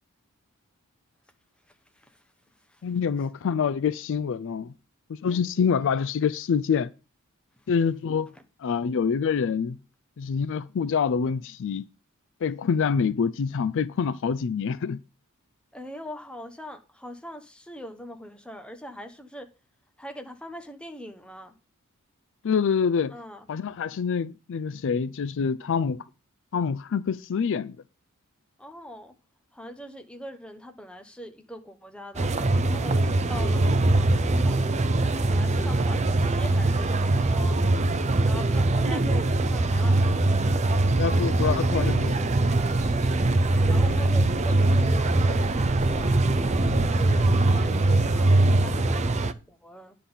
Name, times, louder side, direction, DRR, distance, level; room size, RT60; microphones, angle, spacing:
voice 1, 2.8-4.7 5.1-6.9 7.7-8.3 8.6-9.8 10.2-11.8 12.4-15.0 22.4-23.1 23.5-26.0 26.5-27.8 41.0-42.3, left 6 dB, 60° left, 0.4 m, -26 dB
voice 2, 15.7-19.5 20.0-21.5 23.1-23.5 28.6-29.1 29.5-32.3 32.7-34.7 35.3-37.6 38.3-40.1 43.5-46.2 46.9-50.0, equal, 5° left, 1.0 m, -42 dB
sound 1, 32.1-49.3, right 2 dB, 30° right, 0.5 m, -22 dB
sound 2, 42.5-47.4, equal, 15° right, 1.8 m, -37 dB
9.9 x 3.9 x 7.0 m
head